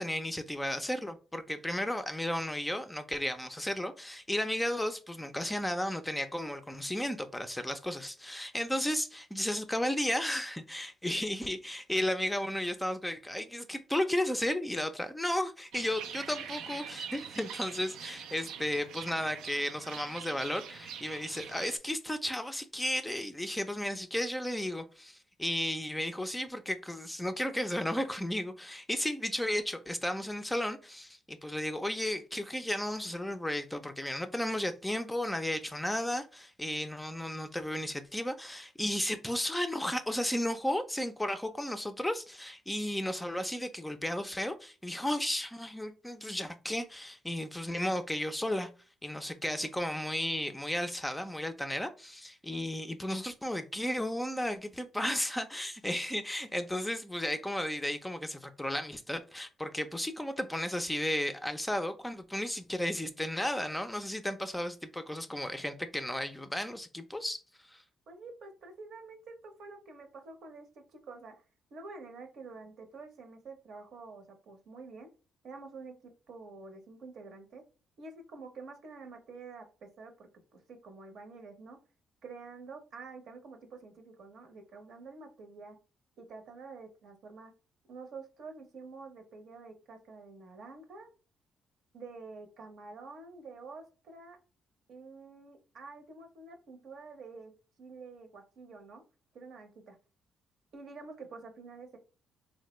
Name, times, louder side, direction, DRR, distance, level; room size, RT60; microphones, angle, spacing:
voice 1, 0.0-48.7 49.0-67.4 67.7-67.8, left 1 dB, 10° left, 0.4 m, -34 dB
sound 1, 15.7-21.8, right 8 dB, 85° right, 0.3 m, -44 dB
voice 2, 68.1-71.3 71.7-75.1 75.4-77.6 78.0-81.8 82.2-85.8 86.2-87.5 87.9-91.1 91.9-94.4 94.9-97.5 97.8-99.0 99.3-99.9 100.7-102.0, right 4 dB, 70° right, 0.7 m, -48 dB
3.3 x 2.1 x 3.0 m
cardioid pair, 90°, 0 cm